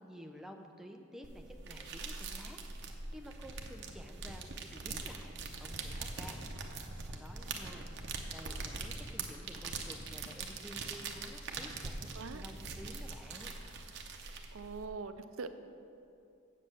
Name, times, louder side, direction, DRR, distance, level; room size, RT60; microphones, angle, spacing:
voice 1, 0.0-6.4 6.7-12.0 12.3-13.5, equal, ahead, 3 dB, 0.6 m, -52 dB
sound 1, 1.2-14.9, right 4 dB, 60° right, 0.8 m, -43 dB
voice 2, 14.5-15.5, right 4 dB, 85° right, 10 dB, 0.5 m, -42 dB
7.7 x 7.4 x 6.5 m, 2.7 s
head